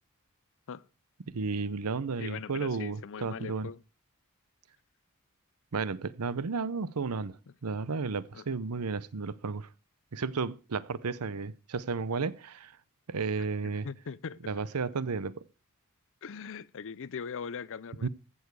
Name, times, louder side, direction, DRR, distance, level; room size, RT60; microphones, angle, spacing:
voice 1, 1.3-3.7 5.7-9.7 10.1-12.8 13.1-13.9 14.5-15.4 18.0-18.1, right 4 dB, 80° right, 0.7 m, -33 dB
voice 2, 2.2-3.8 8.3-8.4 13.6-14.5 16.2-18.1, left 6 dB, 60° left, 0.6 m, -40 dB
15.0 x 7.1 x 4.7 m
head